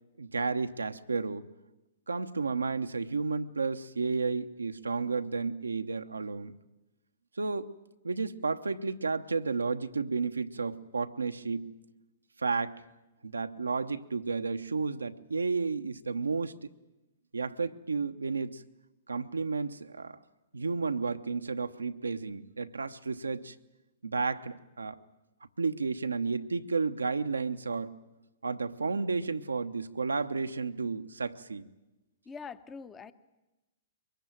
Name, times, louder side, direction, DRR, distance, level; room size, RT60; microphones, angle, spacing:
voice 1, 0.2-1.4 2.1-6.5 7.4-7.7 8.0-11.7 12.4-12.8 13.2-16.6 17.3-18.6 19.1-20.2 20.5-23.5 24.0-25.0 25.6-27.9 28.4-31.6, right 4 dB, 80° right, 8 dB, 0.9 m, -32 dB
voice 2, 32.3-33.1, left 5 dB, 15° left, 14 dB, 1.0 m, -43 dB
23.5 x 22.0 x 9.1 m, 1.0 s
figure-of-eight pair, 110°, 0 cm